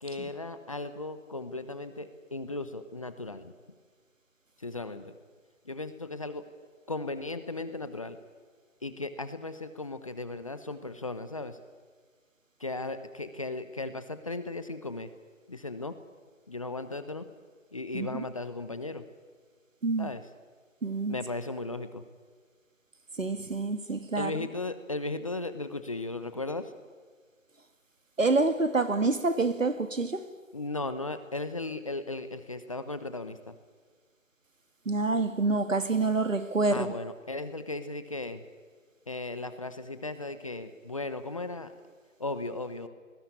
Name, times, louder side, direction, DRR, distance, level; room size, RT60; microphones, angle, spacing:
voice 1, 0.0-3.5 4.6-5.1 5.6-6.4 6.9-8.2 8.8-11.6 12.6-15.1 15.5-16.0 16.5-17.3 17.7-19.0 20.0-20.2 21.1-22.0 24.2-26.7 30.5-33.5 36.7-38.4 39.1-41.7 42.2-42.9, left 2 dB, 25° left, 1.0 m, -36 dB
voice 2, 20.8-21.2 23.2-24.3 28.2-30.3 34.9-36.9, right 3 dB, 70° right, 2.3 m, -27 dB
27.0 x 20.0 x 10.0 m
figure-of-eight pair, 160°, 40 cm